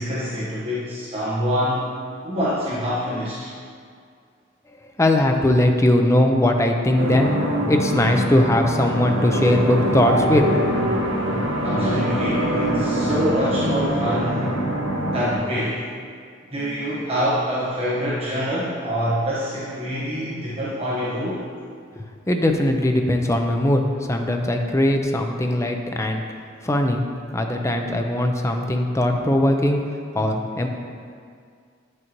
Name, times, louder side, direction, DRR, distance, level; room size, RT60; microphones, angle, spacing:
voice 1, 0.0-1.9 2.2-3.5 11.6-14.6 15.1-15.8 16.5-21.4, equal, 30° right, -9 dB, 1.1 m, -25 dB
voice 2, 4.8-7.3 7.7-10.5 22.0-26.2 26.6-27.0 27.3-29.8 30.1-30.7, left 1 dB, 15° left, 3 dB, 0.5 m, -20 dB
sound 1, 7.0-15.3, equal, 80° right, 1.3 m, -23 dB
9.0 x 6.4 x 3.0 m, 2.2 s
head